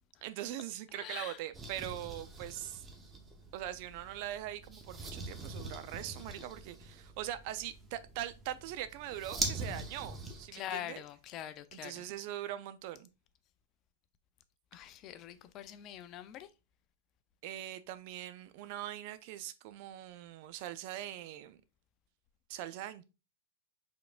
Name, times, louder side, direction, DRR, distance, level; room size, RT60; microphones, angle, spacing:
voice 1, 0.2-2.8 3.5-11.0 11.7-13.1 17.4-21.6 22.5-23.0, right 12 dB, 50° right, 0.4 m, -42 dB
voice 2, 0.9-1.4 10.5-12.0 14.7-16.5, left 11 dB, 35° left, 0.4 m, -44 dB
sound 1, 1.5-10.5, right 3 dB, 15° right, 0.8 m, -43 dB
4.7 x 3.6 x 2.4 m
hypercardioid pair, 105°, 0 cm